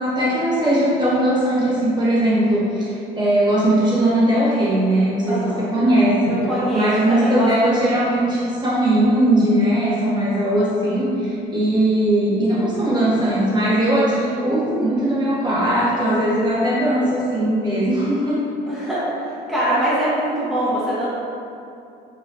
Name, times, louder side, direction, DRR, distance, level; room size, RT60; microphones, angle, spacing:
voice 1, 0.0-6.4 6.7-18.4, right 1 dB, 25° right, -8 dB, 1.0 m, -19 dB
voice 2, 5.3-5.7 6.3-8.0 18.7-21.1, right 1 dB, ahead, -12 dB, 0.7 m, -23 dB
3.8 x 2.2 x 2.8 m, 2.6 s
cardioid pair, 110°, 17 cm